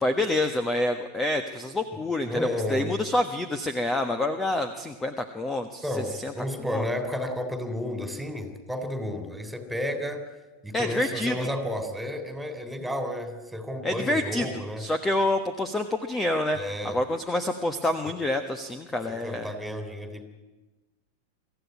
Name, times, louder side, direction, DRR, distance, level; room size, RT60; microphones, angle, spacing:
voice 1, 0.0-5.8 6.2-6.3 6.6-6.9 10.7-11.4 13.8-16.6 16.8-19.5, left 1 dB, 15° left, 8 dB, 1.3 m, -27 dB
voice 2, 2.3-2.9 5.8-10.3 10.6-14.8 16.6-17.0 19.2-20.2, left 1 dB, 5° right, 7 dB, 3.5 m, -32 dB
24.5 x 15.0 x 9.6 m, 1.2 s
figure-of-eight pair, 90°, 0 cm